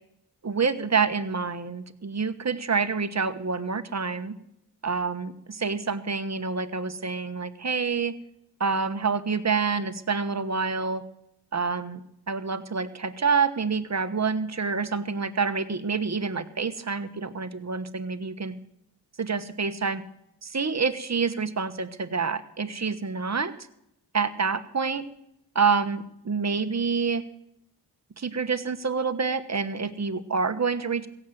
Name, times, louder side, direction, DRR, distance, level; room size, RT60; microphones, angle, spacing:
voice 1, 0.4-4.3 4.8-8.1 8.6-11.0 11.5-18.5 19.2-20.0 20.4-23.5 24.1-25.0 25.5-27.2 28.2-31.1, right 5 dB, 40° right, 10 dB, 1.2 m, -27 dB
16.0 x 8.0 x 7.8 m, 0.79 s
cardioid pair, 55°, 41 cm